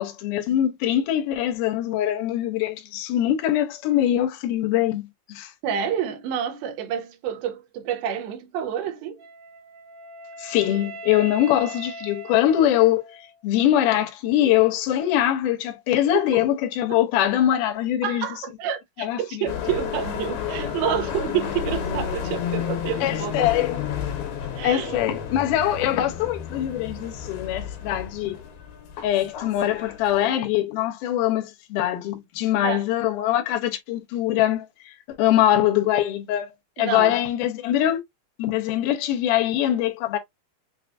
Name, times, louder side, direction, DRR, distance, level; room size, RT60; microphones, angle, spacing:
voice 1, 0.0-5.5 10.4-18.2 19.0-19.2 23.0-23.9 24.6-28.4 29.0-36.5 36.8-38.0 38.4-40.2, left 12 dB, 70° left, 2.2 m, -23 dB
voice 2, 5.6-9.2 16.1-16.4 16.9-17.0 18.0-23.5 24.6-25.0 32.6-32.8 36.8-37.2, right 9 dB, 80° right, 2.6 m, -29 dB
Wind instrument woodwind instrument, 9.2-13.4, right 1 dB, 65° right, 2.6 m, -40 dB
sound 1, 19.5-30.3, left 8 dB, 85° left, 2.9 m, -31 dB
6.8 x 2.3 x 2.6 m
omnidirectional pair, 4.3 m